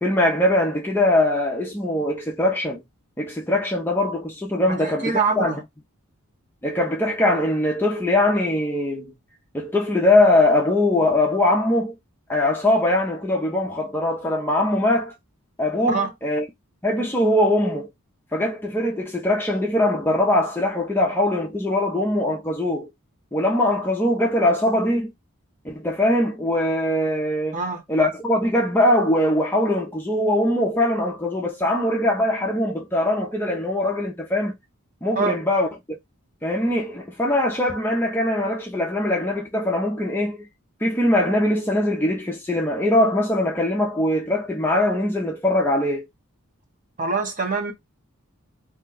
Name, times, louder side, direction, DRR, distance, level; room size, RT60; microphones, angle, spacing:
voice 1, 0.0-2.8 3.2-5.5 6.6-9.1 9.5-12.0 12.3-15.1 15.6-16.4 16.8-17.9 18.3-22.9 23.3-25.1 25.6-27.6 27.9-34.5 35.0-35.7 36.4-40.5 40.8-46.1, left 1 dB, 10° left, 0.5 m, -21 dB
voice 2, 4.7-5.6 15.9-16.1 27.5-27.8 35.2-35.3 47.0-47.7, right 4 dB, 35° right, 0.8 m, -24 dB
2.7 x 2.2 x 3.8 m
head